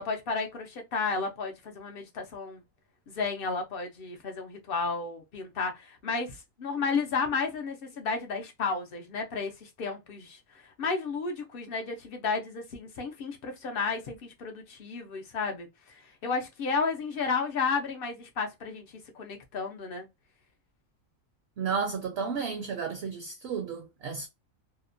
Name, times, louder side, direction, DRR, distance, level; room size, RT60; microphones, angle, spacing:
voice 1, 0.0-2.6 3.1-18.9 19.1-20.1, left 4 dB, 70° left, 0.5 m, -32 dB
voice 2, 21.6-24.3, right 6 dB, 60° right, 0.7 m, -32 dB
2.7 x 2.1 x 2.5 m
omnidirectional pair, 1.4 m